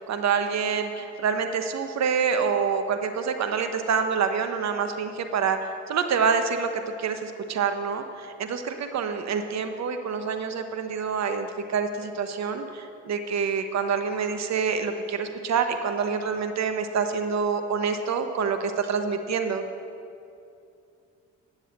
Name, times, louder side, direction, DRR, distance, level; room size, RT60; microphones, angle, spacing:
voice 1, 0.0-5.6 5.9-6.7 7.0-19.6, right 6 dB, 60° right, 7 dB, 1.0 m, -27 dB
11.0 x 7.3 x 7.9 m, 2.5 s
cardioid pair, 90°, 30 cm